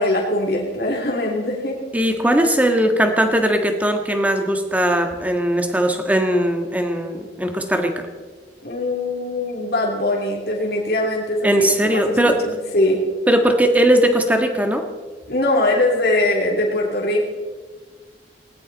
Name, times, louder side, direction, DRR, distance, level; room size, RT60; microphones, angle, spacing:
voice 1, 0.0-1.8 8.6-13.0 15.3-17.2, left 1 dB, 60° left, -2 dB, 3.1 m, -21 dB
voice 2, 1.9-8.1 11.4-12.4 13.3-14.8, right 1 dB, 10° right, 5 dB, 1.5 m, -19 dB
19.0 x 18.5 x 4.1 m, 1.4 s
head